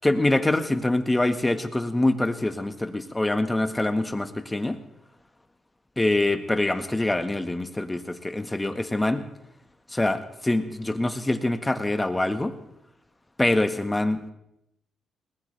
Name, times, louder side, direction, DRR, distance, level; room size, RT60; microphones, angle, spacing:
voice 1, 0.0-4.8 6.0-9.2 9.9-12.5 13.4-14.3, left 2 dB, 15° left, 8 dB, 1.6 m, -25 dB
20.5 x 19.5 x 3.4 m, 0.79 s
cardioid pair, 75°, 0 cm